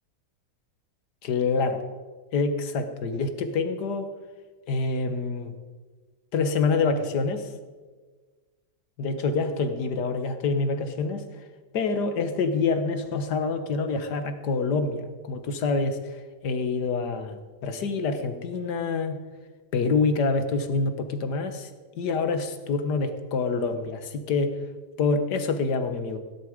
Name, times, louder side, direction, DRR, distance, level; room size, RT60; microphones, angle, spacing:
voice 1, 1.2-1.8 2.3-4.1 4.7-5.5 6.3-7.5 9.0-11.5 11.7-16.0 16.4-19.2 19.7-21.7 22.0-24.5 25.0-26.2, left 4 dB, 70° left, 9 dB, 1.8 m, -26 dB
16.5 x 11.0 x 5.1 m, 1.4 s
omnidirectional pair, 1.9 m